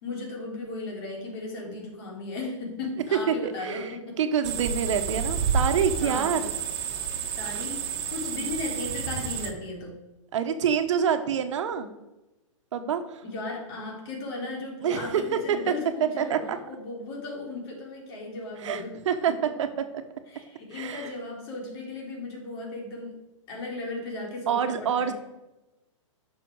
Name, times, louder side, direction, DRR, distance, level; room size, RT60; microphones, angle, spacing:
voice 1, 0.0-4.2 6.0-6.4 7.4-10.0 13.2-19.0 19.4-19.5 20.3-23.2 23.5-25.1, left 2 dB, 50° left, -1 dB, 3.7 m, -36 dB
voice 2, 3.1-6.5 10.3-11.9 12.7-13.2 14.8-15.6 16.2-16.6 18.6-19.7 20.7-21.1 24.5-25.1, right 7 dB, 65° right, 8 dB, 1.2 m, -27 dB
sound 1, 4.4-9.5, right 6 dB, 50° right, 1.2 m, -30 dB
10.5 x 6.2 x 4.7 m, 1.0 s
hypercardioid pair, 140°, 17 cm